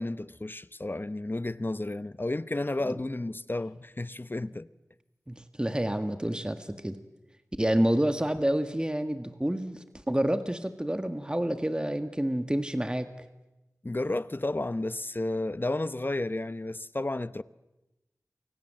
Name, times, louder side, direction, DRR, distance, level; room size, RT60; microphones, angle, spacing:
voice 1, 0.0-4.7 13.8-17.4, left 2 dB, 35° left, 0.9 m, -32 dB
voice 2, 5.3-7.0 7.6-13.1, right 1 dB, 15° right, 1.6 m, -28 dB
29.0 x 24.5 x 7.6 m
wide cardioid pair, 50°, 6 cm